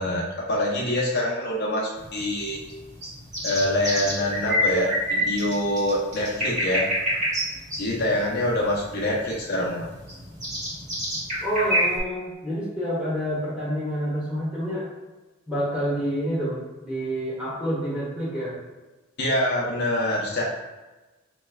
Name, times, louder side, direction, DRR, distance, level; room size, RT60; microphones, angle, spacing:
voice 1, 0.0-2.6 3.4-6.9 7.8-9.9 19.2-20.4, left 1 dB, 50° left, -3 dB, 0.7 m, -25 dB
sound 1, 2.0-12.0, equal, 35° right, 1.5 m, -28 dB
voice 2, 11.4-14.9 15.5-18.6, equal, 5° right, -8 dB, 1.4 m, -28 dB
5.1 x 3.2 x 2.3 m, 1.1 s
head